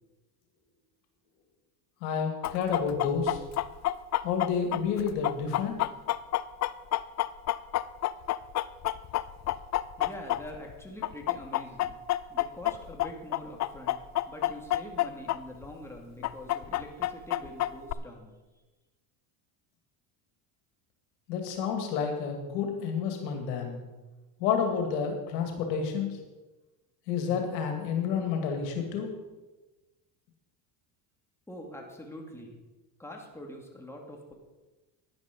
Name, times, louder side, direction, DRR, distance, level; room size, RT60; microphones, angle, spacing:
voice 1, 2.0-3.4 4.2-5.8 21.3-23.8 24.4-26.2 27.1-29.1, left 6 dB, 90° left, 4 dB, 2.4 m, -30 dB
Chicken rooster, 2.4-10.7 11.0-15.4 15.6-15.7 16.2-17.9, left 14 dB, 35° left, 0.5 m, -28 dB
voice 2, 10.0-12.0 12.3-14.0 14.3-18.3 31.5-32.6 33.0-34.3, left 1 dB, 5° left, 0 dB, 2.5 m, -44 dB
11.0 x 10.5 x 5.3 m, 1.1 s
supercardioid pair, 100°, 48 cm